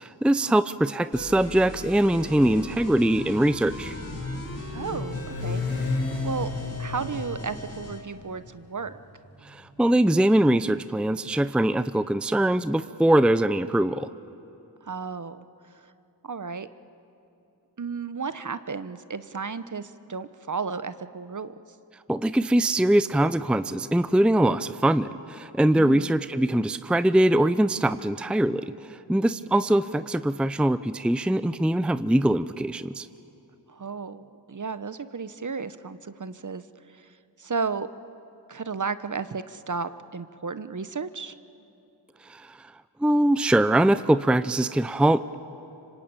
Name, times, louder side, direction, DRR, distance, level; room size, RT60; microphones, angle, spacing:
voice 1, 0.0-4.0 9.4-14.1 22.1-33.1 42.3-42.7 43.0-45.3, right 1 dB, ahead, 13 dB, 0.6 m, -22 dB
sound 1, 1.1-8.0, left 2 dB, 35° left, 4.4 m, -39 dB
Motorcycle, 2.6-10.4, left 3 dB, 90° left, 4.8 m, -34 dB
voice 2, 4.7-6.5 6.8-8.9 14.8-15.5 16.2-16.7 17.8-21.5 25.7-26.2 33.7-36.6 37.4-37.9 38.5-41.3, right 5 dB, 40° right, 13 dB, 1.1 m, -33 dB
26.0 x 25.0 x 8.9 m, 2.8 s
cardioid pair, 45°, 44 cm